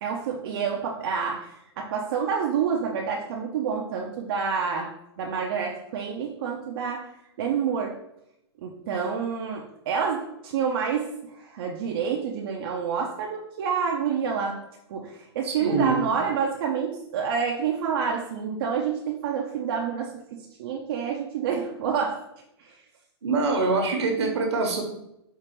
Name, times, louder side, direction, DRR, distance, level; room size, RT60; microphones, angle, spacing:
voice 1, 0.0-7.1 7.4-8.0 8.6-14.6 14.9-22.2 22.6-22.8, right 6 dB, 55° right, 1 dB, 0.5 m, -28 dB
voice 2, 15.4-16.0 23.2-24.8, right 3 dB, 80° right, 2 dB, 1.0 m, -24 dB
4.5 x 2.4 x 3.0 m, 0.82 s
hypercardioid pair, 145°, 14 cm